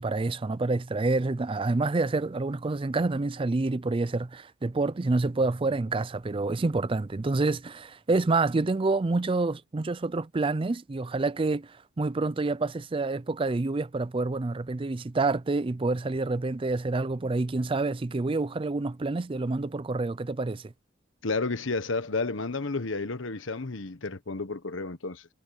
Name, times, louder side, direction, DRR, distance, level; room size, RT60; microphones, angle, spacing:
voice 1, 0.0-20.7, right 3 dB, 25° right, 0.4 m, -28 dB
voice 2, 21.2-25.3, left 3 dB, 65° left, 1.2 m, -31 dB
head